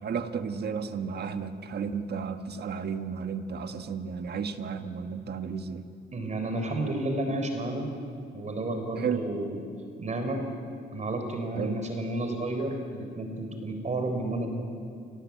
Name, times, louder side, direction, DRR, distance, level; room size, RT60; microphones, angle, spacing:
voice 1, 0.0-5.8 9.0-9.3 11.5-11.8, right 6 dB, 55° right, 8 dB, 1.5 m, -33 dB
voice 2, 6.1-8.0 8.3-9.6 10.0-10.5 10.9-14.5, right 2 dB, 35° right, 5 dB, 4.0 m, -31 dB
26.5 x 18.5 x 8.4 m, 2.4 s
cardioid pair, 90°, 20 cm